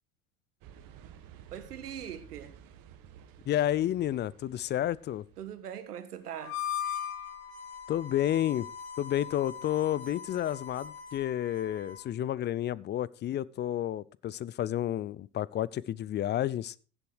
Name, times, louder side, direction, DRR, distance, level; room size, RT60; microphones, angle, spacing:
sound 1, 0.6-5.7, right 9 dB, 50° right, 1.7 m, -53 dB
voice 1, 1.5-2.5 5.4-6.6, right 9 dB, 85° right, 1.7 m, -41 dB
voice 2, 3.5-5.2 7.9-8.7 9.0-16.7, left 12 dB, 25° left, 0.4 m, -30 dB
Harmonica, 6.4-12.1, left 8 dB, 60° left, 2.9 m, -40 dB
16.0 x 7.2 x 4.8 m
hypercardioid pair, 90°, 45 cm